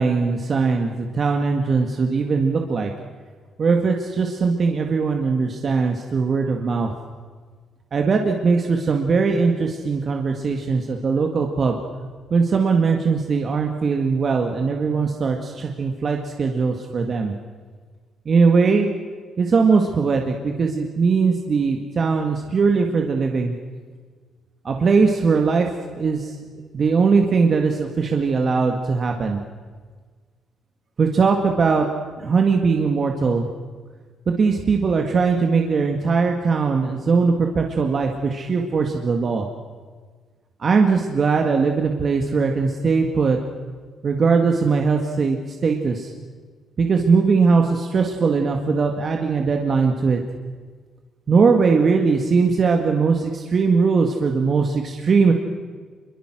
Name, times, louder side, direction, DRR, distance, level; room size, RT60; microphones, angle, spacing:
voice 1, 0.0-2.9 3.6-6.9 7.9-11.8 12.3-17.3 18.3-18.9 19.4-23.5 24.6-25.7 25.9-26.3 26.7-29.4 31.0-31.9 32.2-33.5 34.3-39.5 40.6-43.4 44.0-46.1 46.8-50.2 51.3-55.3, right 4 dB, 45° right, 3 dB, 2.1 m, -20 dB
25.5 x 23.0 x 6.3 m, 1.5 s
cardioid pair, 90°, 0 cm